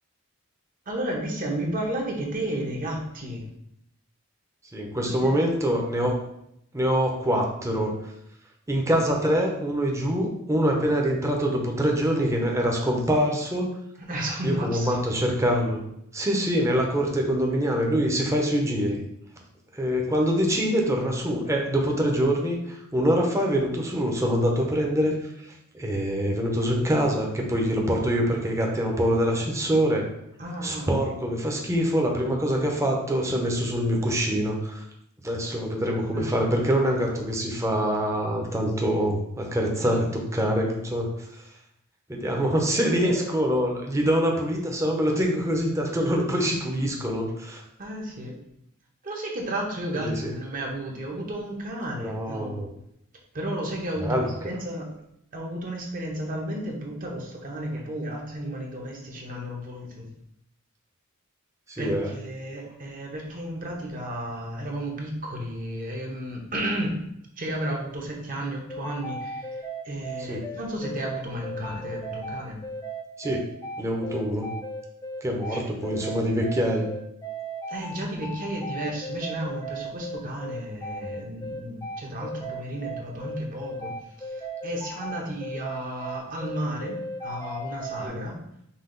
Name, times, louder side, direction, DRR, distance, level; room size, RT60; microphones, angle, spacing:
voice 1, 0.9-3.4 5.0-5.5 14.0-15.0 30.4-30.9 36.0-36.5 39.7-40.0 42.8-43.3 47.8-48.4 49.0-52.7 53.3-54.9 55.3-60.1 61.8-67.0 67.4-72.6 75.5-75.7 77.7-83.9 84.2-88.4, right 1 dB, 40° right, 0 dB, 1.0 m, -33 dB
voice 2, 4.7-6.1 6.7-7.9 8.7-13.7 14.4-15.8 16.1-19.0 19.7-30.0 30.6-34.8 35.2-41.4 42.1-47.6 49.9-50.3 52.0-52.7 54.0-54.3 61.7-62.1 70.3-70.4 73.2-73.4 73.8-74.5 75.2-76.9 88.0-88.2, equal, 15° right, 0 dB, 0.7 m, -25 dB
sound 1, 68.7-88.1, right 1 dB, 15° left, 0.4 m, -36 dB
5.6 x 2.5 x 3.9 m, 0.76 s
head